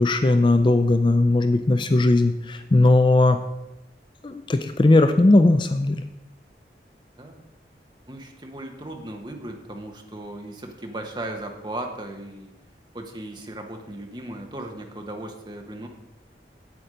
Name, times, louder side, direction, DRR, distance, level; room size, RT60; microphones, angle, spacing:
voice 1, 0.0-3.4 4.2-6.0, left 2 dB, 25° left, 9 dB, 0.4 m, -18 dB
voice 2, 8.1-12.5 12.9-15.9, right 1 dB, 25° right, 3 dB, 1.1 m, -36 dB
8.7 x 8.0 x 5.0 m, 0.97 s
head